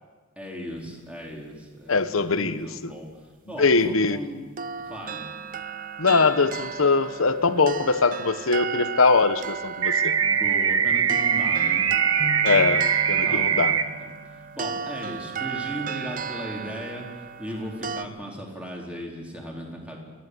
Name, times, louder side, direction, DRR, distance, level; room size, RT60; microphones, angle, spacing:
voice 1, 0.4-3.1 3.5-4.5 4.9-5.3 10.2-11.9 13.2-14.2 14.5-20.0, equal, 5° right, -1 dB, 4.1 m, -37 dB
voice 2, 1.9-2.9 3.6-4.2 6.0-10.2 12.4-13.8, left 4 dB, 70° left, 12 dB, 1.1 m, -22 dB
sound 1, 4.6-18.1, right 7 dB, 40° right, 0.7 m, -34 dB
sound 2, 9.8-13.8, right 7 dB, 70° right, 1.2 m, -22 dB
sound 3, 12.2-15.7, equal, 90° left, 1.7 m, -41 dB
30.0 x 12.0 x 8.1 m, 1.4 s
head